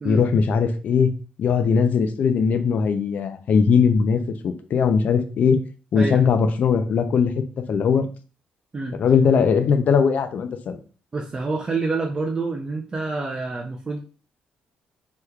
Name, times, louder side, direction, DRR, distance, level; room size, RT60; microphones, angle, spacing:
voice 1, 0.0-1.1 1.4-5.6 5.9-7.3 7.7-8.1 9.0-10.8, left 6 dB, 55° left, 8 dB, 0.4 m, -19 dB
voice 2, 5.9-6.2 8.7-9.0 11.1-14.0, right 3 dB, 25° right, 1 dB, 0.4 m, -27 dB
3.5 x 3.0 x 2.3 m, 0.38 s
cardioid pair, 110°, 3 cm